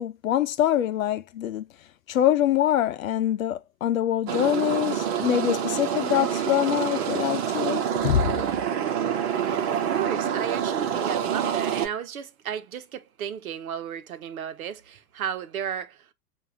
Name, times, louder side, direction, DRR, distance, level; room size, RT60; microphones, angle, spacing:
voice 1, 0.0-1.7 2.1-8.4, left 11 dB, 55° left, 0.7 m, -24 dB
sound 1, 4.3-11.9, right 8 dB, 40° right, 1.3 m, -27 dB
voice 2, 9.7-16.1, right 9 dB, 60° right, 1.1 m, -33 dB
6.7 x 2.8 x 2.7 m
figure-of-eight pair, 115°, 48 cm